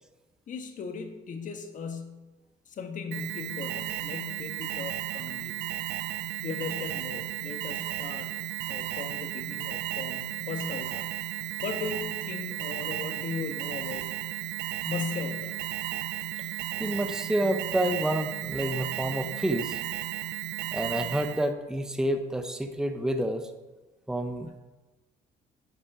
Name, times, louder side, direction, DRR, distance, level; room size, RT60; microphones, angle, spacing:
voice 1, 0.5-2.2 2.7-5.6 6.4-8.3 8.6-11.1 11.6-14.1 14.8-15.6, left 5 dB, 50° left, 6 dB, 1.4 m, -37 dB
Alarm, 3.1-21.5, right 15 dB, 80° right, 0.5 m, -34 dB
voice 2, 16.8-19.8 20.7-23.5 24.1-24.6, right 1 dB, 5° right, 6 dB, 0.7 m, -29 dB
10.5 x 6.2 x 4.9 m, 1.2 s
cardioid pair, 110°, 17 cm